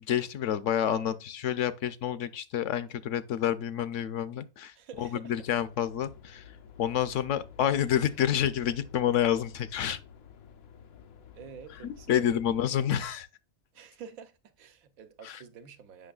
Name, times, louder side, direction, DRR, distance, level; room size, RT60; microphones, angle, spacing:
voice 1, 0.1-6.4 6.8-10.0 11.8-13.3 15.2-15.4, left 10 dB, 70° left, 0.9 m, -29 dB
voice 2, 4.7-5.3 11.3-12.3 13.7-16.1, right 7 dB, 90° right, 1.3 m, -48 dB
sound 1, 5.4-12.6, left 7 dB, 90° left, 1.2 m, -51 dB
7.7 x 5.9 x 2.3 m
omnidirectional pair, 1.4 m